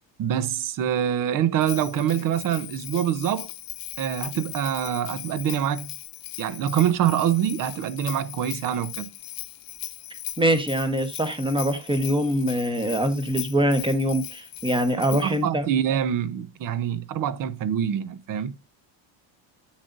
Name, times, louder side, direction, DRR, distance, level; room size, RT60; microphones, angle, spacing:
voice 1, 0.2-3.5 4.0-5.9 6.4-9.1 15.1-18.5, right 9 dB, 40° right, 0.8 m, -25 dB
Bell, 1.6-15.4, left 15 dB, 45° left, 0.9 m, -39 dB
voice 2, 10.4-15.7, equal, 10° right, 1.1 m, -23 dB
9.9 x 8.0 x 2.6 m
cardioid pair, 160°, 50 cm